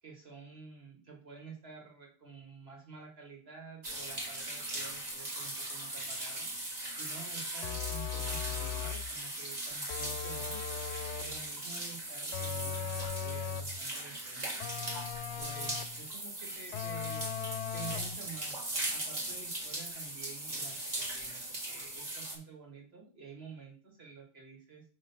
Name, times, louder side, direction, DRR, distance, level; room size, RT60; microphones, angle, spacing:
voice 1, 0.0-10.6 11.2-14.6 15.4-17.3 17.7-24.8, right 5 dB, 65° right, 1 dB, 2.0 m, -50 dB
sound 1, 3.8-22.4, right 1 dB, 40° right, 1.5 m, -39 dB
sound 2, 7.6-9.1 9.9-11.4 12.3-13.8 14.6-16.0 16.7-18.2, left 9 dB, 90° left, 0.9 m, -38 dB
5.6 x 3.4 x 5.5 m, 0.41 s
omnidirectional pair, 1.1 m